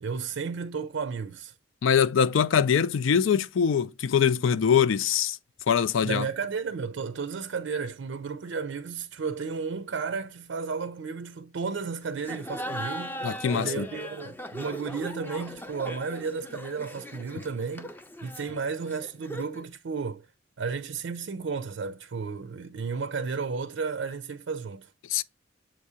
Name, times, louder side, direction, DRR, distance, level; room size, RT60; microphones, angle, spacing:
voice 1, 0.0-1.5 6.0-17.9 18.2-20.3 20.6-24.9, right 5 dB, 65° right, 0.4 m, -33 dB
voice 2, 1.8-5.4 5.7-6.2 13.2-13.9 25.1-25.2, left 7 dB, 80° left, 0.4 m, -23 dB
Laughter, 12.2-19.7, equal, 10° left, 0.5 m, -39 dB
7.4 x 2.7 x 4.8 m
head